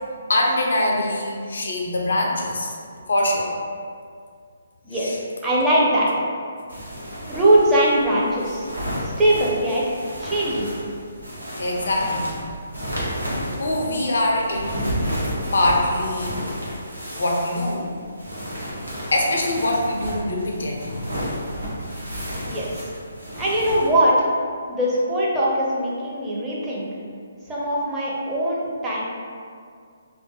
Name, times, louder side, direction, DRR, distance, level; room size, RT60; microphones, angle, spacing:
voice 1, 0.3-2.8 3.1-3.5 5.0-5.2 11.6-12.4 12.9-13.1 13.6-15.0 15.5-16.4 17.2-17.9 18.6-18.8 19.1-21.0, left 1 dB, 65° left, -1 dB, 0.4 m, -23 dB
voice 2, 4.8-6.1 7.3-8.7 9.2-10.7 22.5-22.7 23.4-24.3 24.7-26.9 27.5-29.0, right 1 dB, 10° right, -6 dB, 0.5 m, -21 dB
sound 1, 6.7-23.9, equal, 85° right, 0.7 m, -32 dB
2.2 x 2.1 x 2.8 m, 2.2 s
figure-of-eight pair, 140°, 0 cm